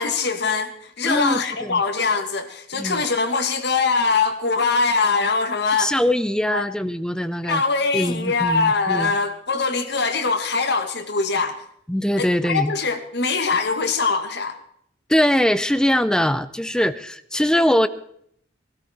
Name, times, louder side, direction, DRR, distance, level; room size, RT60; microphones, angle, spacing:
voice 1, 0.0-5.9 6.5-6.6 7.5-11.6 12.2-14.5, left 4 dB, 65° left, 7 dB, 1.7 m, -22 dB
voice 2, 1.0-1.8 2.8-3.0 5.8-7.6 7.9-9.2 11.9-12.7 15.1-17.9, equal, 5° left, 13 dB, 0.5 m, -22 dB
19.0 x 13.0 x 4.3 m, 0.68 s
head